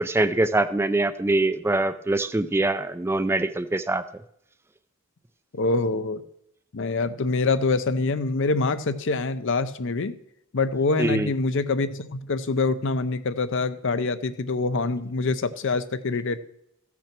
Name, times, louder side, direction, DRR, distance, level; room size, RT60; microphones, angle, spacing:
voice 1, 0.0-4.0 11.0-11.3, right 2 dB, 10° right, 11 dB, 0.4 m, -23 dB
voice 2, 5.5-6.2 6.7-10.2 10.5-16.4, left 3 dB, 60° left, 12 dB, 0.6 m, -25 dB
14.5 x 5.9 x 6.0 m, 0.76 s
head